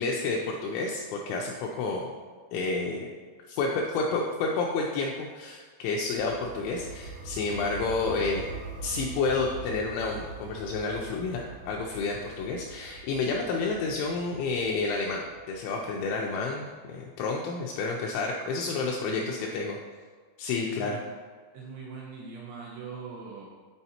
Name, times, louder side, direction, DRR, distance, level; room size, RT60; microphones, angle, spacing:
voice 1, 0.0-2.1 2.5-3.1 3.5-8.5 8.8-19.8 20.4-21.0, left 3 dB, 85° left, -1 dB, 2.7 m, -30 dB
sound 1, 6.2-16.1, right 4 dB, 70° right, 2.7 m, -43 dB
voice 2, 18.7-19.8 20.6-21.0 21.5-23.5, right 5 dB, 85° right, -5 dB, 2.6 m, -42 dB
9.0 x 4.0 x 2.8 m, 1.5 s
omnidirectional pair, 5.8 m